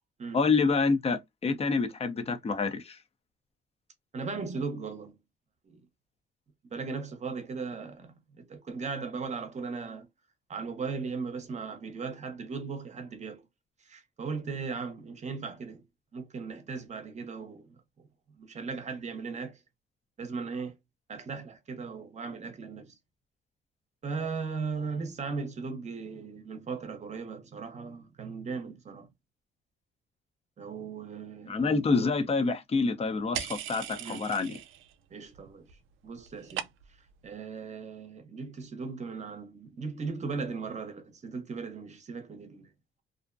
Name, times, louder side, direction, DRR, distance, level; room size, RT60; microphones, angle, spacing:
voice 1, 0.3-3.0 31.5-34.5, left 4 dB, 30° left, 0.6 m, -27 dB
voice 2, 4.1-5.2 5.7-5.8 6.7-10.1 10.5-13.5 13.8-15.8 16.1-18.1 18.4-19.6 20.2-20.8 21.1-22.9 24.0-29.1 30.6-31.6 34.0-34.3 35.1-35.7 36.0-36.7 37.2-42.7, right 4 dB, 35° right, 0.8 m, -37 dB
sound 1, 33.3-34.9 35.2-35.8 36.0-37.1, right 10 dB, 85° right, 0.4 m, -39 dB
2.5 x 2.1 x 2.4 m
cardioid pair, 110°, 20 cm